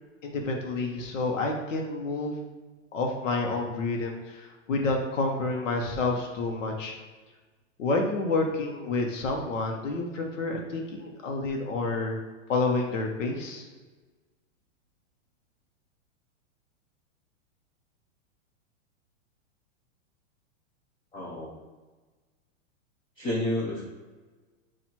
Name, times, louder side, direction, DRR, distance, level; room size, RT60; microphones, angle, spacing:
voice 1, 0.2-2.4 2.9-6.9 7.8-12.2 12.5-13.7, left 3 dB, 85° left, 1 dB, 0.9 m, -29 dB
voice 2, 21.1-21.5 23.2-23.8, left 1 dB, 15° left, -5 dB, 0.4 m, -30 dB
4.2 x 2.5 x 4.4 m, 1.3 s
hypercardioid pair, 145°, 37 cm